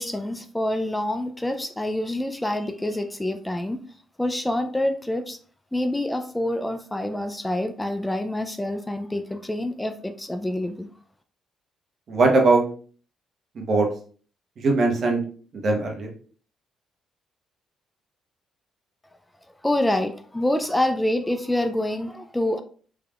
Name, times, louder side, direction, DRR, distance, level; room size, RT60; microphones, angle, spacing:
voice 1, 0.0-3.8 4.2-5.4 5.7-10.9 19.6-22.6, left 1 dB, 10° left, 8 dB, 0.3 m, -26 dB
voice 2, 12.1-12.6 13.6-13.9 14.6-15.2 15.5-16.1, right 3 dB, 55° right, 1 dB, 1.0 m, -20 dB
3.4 x 3.2 x 2.4 m, 0.42 s
cardioid pair, 90°, 0 cm